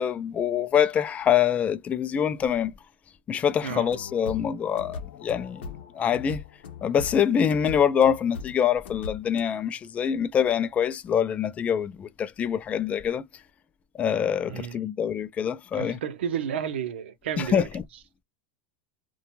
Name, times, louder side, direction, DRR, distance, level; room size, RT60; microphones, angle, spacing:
voice 1, 0.0-2.7 3.3-5.6 5.9-6.4 6.8-13.2 14.0-16.0 17.4-17.8, left 8 dB, 25° left, 0.3 m, -25 dB
sound 1, 3.7-9.4, left 5 dB, 85° left, 0.7 m, -40 dB
voice 2, 14.5-14.8 15.7-17.7, right 8 dB, 85° right, 0.6 m, -31 dB
2.5 x 2.2 x 2.9 m
supercardioid pair, 125°, 6 cm